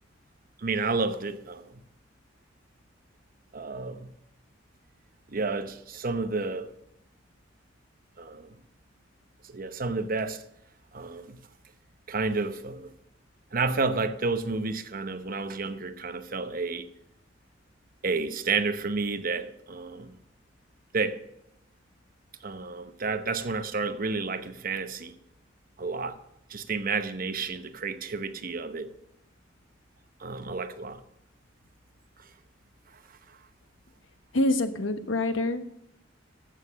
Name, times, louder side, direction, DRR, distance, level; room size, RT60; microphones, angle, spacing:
voice 1, 0.6-1.8 3.5-4.1 5.3-6.7 8.2-8.5 9.4-10.4 10.9-11.4 12.1-12.9 13.5-16.9 18.0-20.1 20.9-21.2 22.4-25.2 25.8-26.2 26.5-28.9 30.2-31.0 32.2-32.3, right 4 dB, 50° right, 0.9 m, -31 dB
voice 2, 34.3-35.7, left 2 dB, 85° left, 1.1 m, -26 dB
14.5 x 6.6 x 6.3 m
head